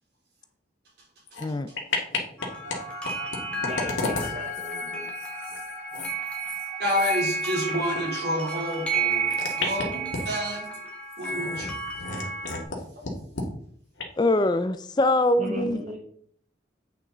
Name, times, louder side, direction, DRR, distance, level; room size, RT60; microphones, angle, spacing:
sound 1, 1.3-1.5 1.7-2.8 3.0-8.0 8.3-8.4 9.2-10.5 11.1-12.8 13.0-13.5 14.0-14.1, left 3 dB, 90° left, 1.9 m, -33 dB
sound 2, 2.4-12.6, right 3 dB, 5° left, 1.4 m, -32 dB
sound 3, 2.6-10.3, equal, 70° left, 2.1 m, -45 dB
voice 1, 3.4-5.1 15.4-16.0, right 1 dB, 35° right, 2 dB, 0.8 m, -36 dB
voice 2, 6.8-9.9 10.3-10.7 11.2-11.7, equal, 55° right, -2 dB, 3.3 m, -29 dB
voice 3, 14.2-15.8, left 2 dB, 20° left, 11 dB, 0.3 m, -23 dB
8.5 x 6.1 x 3.9 m, 0.64 s
head